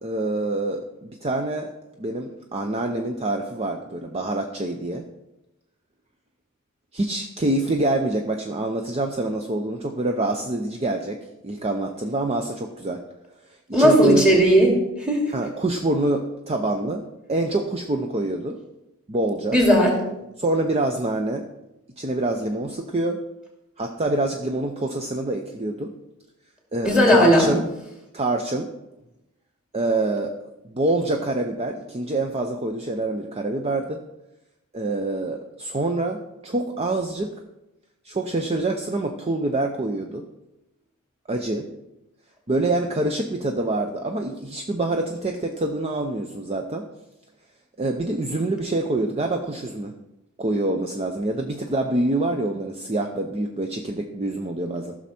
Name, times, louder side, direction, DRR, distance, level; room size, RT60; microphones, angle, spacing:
voice 1, 0.0-1.7 2.0-5.0 6.9-13.0 13.7-14.2 15.3-18.6 19.1-19.6 20.4-21.4 22.0-23.2 23.8-25.9 26.7-27.6 28.1-28.7 29.7-30.4 30.7-34.0 34.7-37.3 38.0-40.2 41.3-41.7 42.5-46.9 47.8-49.9 50.4-55.0, right 2 dB, 30° right, 4 dB, 0.6 m, -26 dB
voice 2, 13.7-15.2 19.5-19.9 26.8-27.5, equal, 5° right, -1 dB, 2.6 m, -16 dB
14.5 x 6.3 x 4.3 m, 0.95 s
head